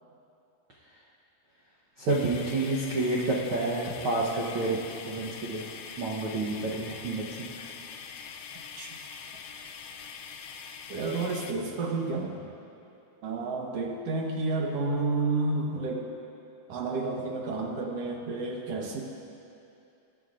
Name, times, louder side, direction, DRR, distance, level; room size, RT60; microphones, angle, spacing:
voice 1, 2.0-4.8 5.1-7.7, right 2 dB, 90° right, -5 dB, 1.1 m, -29 dB
sound 1, 2.1-11.5, left 6 dB, 80° left, 1.9 m, -43 dB
voice 2, 10.9-12.5 13.2-16.1 16.7-19.0, right 3 dB, 60° right, 0 dB, 1.8 m, -30 dB
22.5 x 9.6 x 2.5 m, 2.7 s
omnidirectional pair, 3.9 m